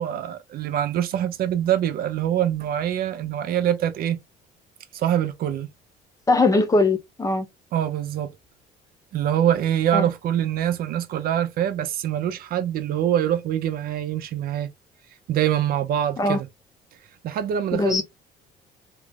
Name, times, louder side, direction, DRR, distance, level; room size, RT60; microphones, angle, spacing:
voice 1, 0.0-4.2 4.9-5.7 7.7-8.3 9.1-14.7 15.3-16.5 17.2-18.0, right 10 dB, 65° right, 0.5 m, -24 dB
voice 2, 6.3-7.5 9.9-10.1 16.2-16.4 17.7-18.0, left 2 dB, 20° left, 0.7 m, -20 dB
3.0 x 2.4 x 3.4 m
cardioid pair, 110°, 17 cm